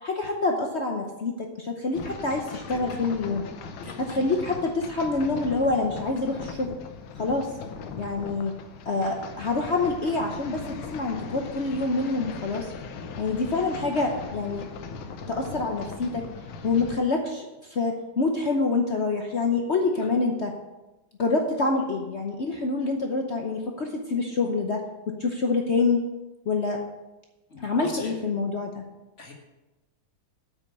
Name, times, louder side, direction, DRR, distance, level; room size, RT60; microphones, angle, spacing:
voice 1, 0.0-3.4 4.0-6.8 7.2-7.5 8.0-8.5 8.9-10.6 10.9-12.7 13.2-14.6 15.3-16.2 16.6-20.5 21.2-24.8 25.2-26.0 26.5-26.8 27.6-28.8, left 3 dB, 55° left, 2 dB, 0.8 m, -26 dB
sound 1, 1.9-17.0, left 5 dB, 85° left, 1.7 m, -39 dB
voice 2, 2.7-3.1 3.8-4.3 20.0-20.1 27.5-28.1 29.2-29.3, left 2 dB, 40° left, 0 dB, 1.9 m, -41 dB
8.6 x 6.2 x 6.7 m, 1.0 s
omnidirectional pair, 2.2 m